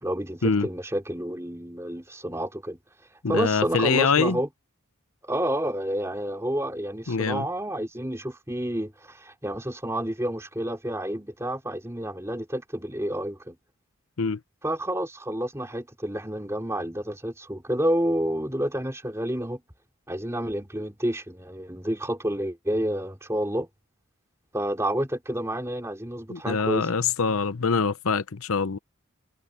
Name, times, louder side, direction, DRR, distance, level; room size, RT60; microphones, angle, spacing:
voice 1, 0.0-2.8 3.3-4.5 5.2-13.5 14.6-19.6 20.1-23.7 24.5-26.9, right 1 dB, 15° right, 3.2 m, -29 dB
voice 2, 3.2-4.4 7.1-7.5 14.2-14.4 26.3-28.8, left 5 dB, 80° left, 0.8 m, -24 dB
head